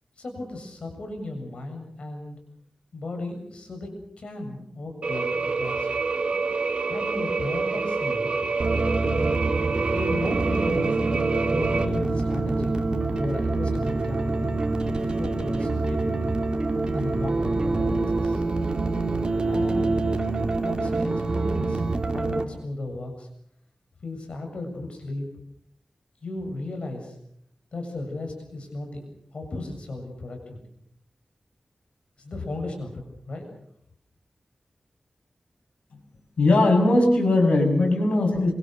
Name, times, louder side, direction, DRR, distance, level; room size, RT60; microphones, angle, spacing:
voice 1, 0.2-2.4 2.9-5.9 6.9-8.3 9.9-11.1 11.4-12.7 13.1-14.6 15.0-16.4 16.9-18.4 19.5-20.1 20.6-23.3 24.0-25.3 26.2-27.1 27.7-29.1 29.3-30.6 32.2-33.5, left 2 dB, 65° left, 4 dB, 7.4 m, -35 dB
sound 1, 5.0-11.8, right 4 dB, 60° right, 2.6 m, -27 dB
sound 2, 8.6-22.4, right 3 dB, 45° right, 2.9 m, -26 dB
voice 2, 36.4-38.5, left 2 dB, 85° left, 2 dB, 7.0 m, -19 dB
26.5 x 24.0 x 6.7 m, 0.71 s
wide cardioid pair, 105°, 2 cm